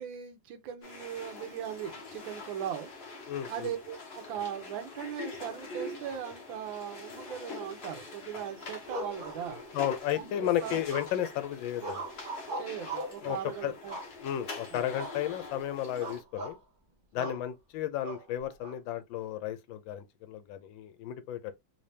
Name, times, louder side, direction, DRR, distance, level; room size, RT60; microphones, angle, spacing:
voice 1, 0.0-2.9 3.5-9.6 10.1-10.8 12.6-13.9 14.7-14.9 17.2-17.4, right 9 dB, 85° right, 1.5 m, -39 dB
sound 1, 0.8-16.2, left 3 dB, 45° left, 0.9 m, -44 dB
voice 2, 3.3-3.7 9.7-12.1 13.2-13.4 13.6-13.7 14.2-16.6 17.1-21.5, left 11 dB, 80° left, 1.3 m, -33 dB
sound 2, 8.9-9.9 10.9-11.4 11.8-13.2 13.9-14.5 14.9-15.2 15.5-15.7 16.0-16.6 17.2-17.4 18.0-18.8, right 2 dB, 50° right, 0.6 m, -40 dB
3.6 x 3.3 x 2.6 m
omnidirectional pair, 2.1 m